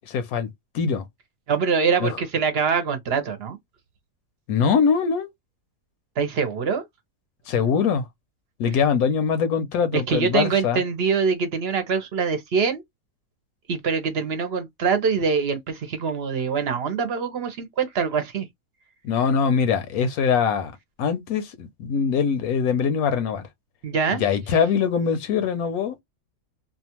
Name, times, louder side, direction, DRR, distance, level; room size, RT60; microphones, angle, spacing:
voice 1, 0.1-0.5 0.7-1.0 2.0-2.2 4.5-5.3 7.5-8.1 8.6-10.8 19.0-20.7 21.0-23.5 24.1-26.0, left 6 dB, 85° left, 1.1 m, -22 dB
voice 2, 1.5-3.6 6.2-6.8 9.9-12.8 13.7-18.5 23.8-24.2, right 5 dB, 55° right, 0.8 m, -24 dB
2.7 x 2.3 x 2.9 m
omnidirectional pair, 1.5 m